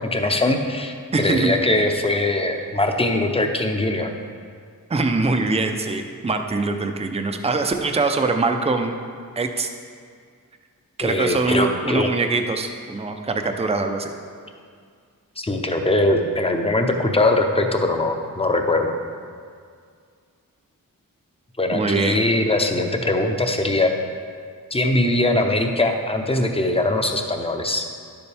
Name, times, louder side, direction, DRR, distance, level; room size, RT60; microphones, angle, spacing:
voice 1, 0.0-4.1 11.0-12.1 15.4-18.9 21.6-23.9 24.7-27.9, left 2 dB, 15° left, 4 dB, 0.7 m, -21 dB
voice 2, 1.1-1.6 4.9-9.0 9.4-9.7 11.0-14.1 21.7-22.3, right 3 dB, 20° right, 5 dB, 0.5 m, -23 dB
11.0 x 7.0 x 3.4 m, 2.1 s
wide cardioid pair, 115°, 35 cm